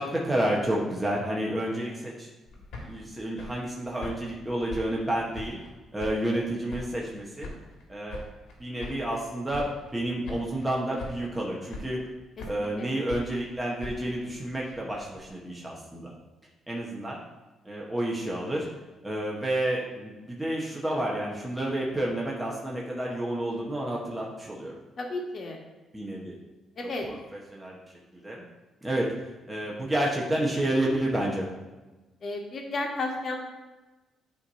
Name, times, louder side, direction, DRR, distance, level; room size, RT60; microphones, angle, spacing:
voice 1, 0.0-2.3 2.8-5.6 5.9-7.5 7.9-8.2 8.6-12.0 12.5-16.1 16.7-17.2 17.6-18.7 19.0-24.7 25.9-26.4 26.8-27.8 28.1-28.4 28.8-29.0 29.5-31.5, right 1 dB, 10° right, -4 dB, 1.3 m, -30 dB
sound 1, 2.4-5.7 6.0-7.1 7.4-9.2 9.5-10.0 10.2-10.7 11.0-11.4 11.7-12.7 13.1-15.3, left 2 dB, 80° left, 1.8 m, -43 dB
voice 2, 25.0-25.6 26.8-27.0 32.2-33.4, left 2 dB, 50° left, 1 dB, 1.5 m, -32 dB
9.6 x 3.3 x 4.2 m, 1.2 s
cardioid pair, 90°, 0 cm